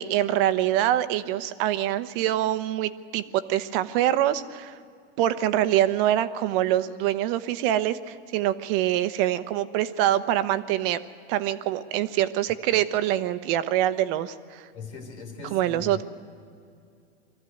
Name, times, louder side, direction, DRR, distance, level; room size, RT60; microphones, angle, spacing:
voice 1, 0.0-4.7 5.2-11.0 11.3-14.6 15.5-16.0, right 12 dB, 55° right, 13 dB, 1.0 m, -25 dB
voice 2, 14.7-16.0, left 4 dB, 85° left, 5 dB, 3.6 m, -40 dB
22.0 x 14.5 x 9.3 m, 2.4 s
hypercardioid pair, 115°, 33 cm